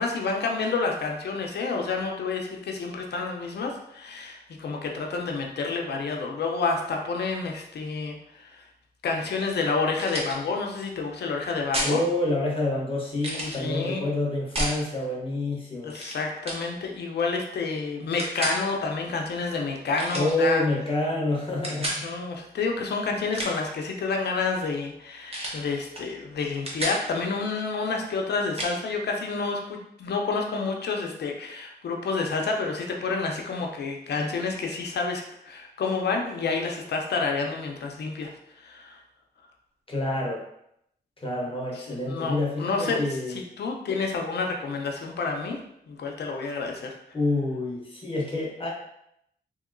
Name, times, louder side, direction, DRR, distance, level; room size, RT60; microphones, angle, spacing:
voice 1, 0.0-8.6 9.0-12.0 13.4-14.1 15.8-20.6 22.0-38.3 38.6-39.0 41.9-43.0 43.3-45.6 45.9-46.9, left 4 dB, 75° left, 1 dB, 0.5 m, -29 dB
sound 1, 10.0-10.4 11.7-12.0 13.2-13.6 14.5-14.8 15.9-16.2 16.4-16.7 18.2-18.6 19.9-20.3 21.6-22.0 23.2-23.7 25.3-25.6 25.9-26.1 26.4-27.0 28.6-28.7, right 1 dB, 35° right, 0.7 m, -31 dB
voice 2, 11.8-16.0 20.1-22.0 39.9-40.4 41.2-43.4 47.1-48.7, left 2 dB, 30° left, -3 dB, 0.7 m, -27 dB
2.9 x 2.8 x 2.5 m, 0.76 s
wide cardioid pair, 110°, 18 cm